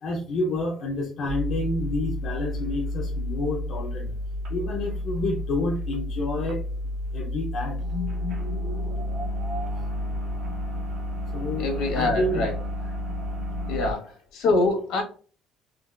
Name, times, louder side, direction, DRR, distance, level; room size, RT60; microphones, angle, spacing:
voice 1, 0.0-4.1 4.5-6.6 7.1-7.8 11.3-11.7 11.9-12.4 13.7-13.8, left 2 dB, 45° left, -2 dB, 0.8 m, -29 dB
sound 1, 1.2-13.9, left 1 dB, 45° right, 1.2 m, -30 dB
voice 2, 11.6-12.5 13.7-15.0, left 2 dB, 75° left, 2 dB, 1.4 m, -25 dB
4.0 x 2.6 x 2.5 m, 0.39 s
cardioid pair, 170°, 0 cm